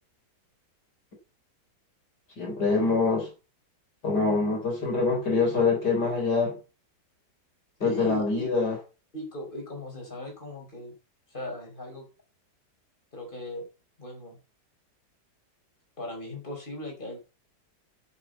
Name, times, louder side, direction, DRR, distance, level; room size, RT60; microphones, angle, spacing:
voice 1, 2.4-3.3 4.0-6.6 7.8-8.8, left 4 dB, 65° left, 4.3 m, -25 dB
voice 2, 7.8-8.5 9.1-10.9 11.3-12.0 13.1-13.6 14.0-14.4 16.0-17.2, left 1 dB, 25° left, 5.2 m, -37 dB
10.0 x 7.3 x 7.8 m
omnidirectional pair, 1.9 m